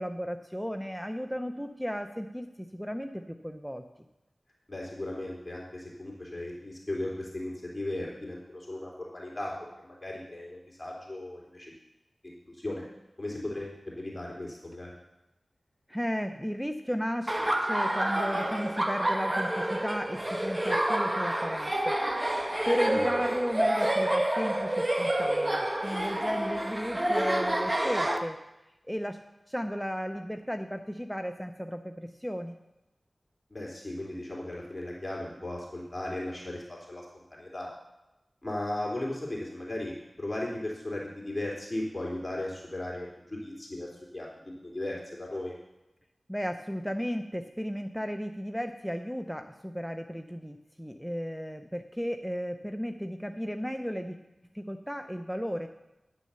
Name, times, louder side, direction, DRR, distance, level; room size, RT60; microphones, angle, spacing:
voice 1, 0.0-3.8 15.9-17.3 17.6-22.0 22.7-28.4 28.9-29.2 29.5-32.5 46.3-54.2 54.5-55.7, equal, ahead, 7 dB, 0.7 m, -34 dB
voice 2, 4.7-11.7 12.2-12.9 13.2-14.9 22.9-23.2 33.5-37.7 38.4-45.5, left 1 dB, 25° left, -4 dB, 3.2 m, -37 dB
Laughter, 17.3-28.2, right 1 dB, 25° right, 1.2 m, -28 dB
10.5 x 6.3 x 6.9 m, 0.95 s
cardioid pair, 40°, 0 cm